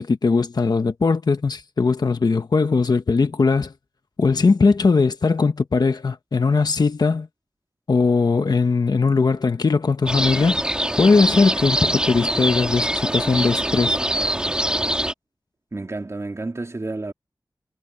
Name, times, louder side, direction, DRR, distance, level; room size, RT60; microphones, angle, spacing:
voice 1, 0.0-3.7 4.2-7.3 7.9-10.6 11.0-14.0, left 4 dB, 65° left, 1.1 m, -19 dB
sound 1, 10.1-15.1, right 1 dB, 10° right, 3.1 m, -23 dB
voice 2, 15.7-17.1, right 2 dB, 40° right, 3.3 m, -30 dB
wide cardioid pair, 70°, 7 cm